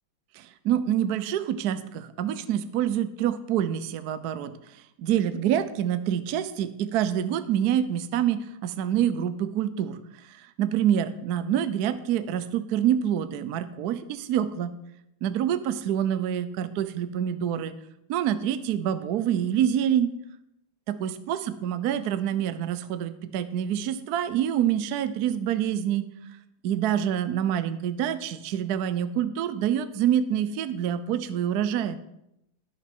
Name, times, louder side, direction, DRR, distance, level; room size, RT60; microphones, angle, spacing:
voice 1, 0.4-4.5 5.0-10.0 10.3-14.7 15.2-17.7 18.1-20.1 20.9-26.1 26.6-32.0, right 10 dB, 70° right, 12 dB, 0.9 m, -26 dB
12.0 x 6.6 x 6.0 m, 0.82 s
omnidirectional pair, 2.3 m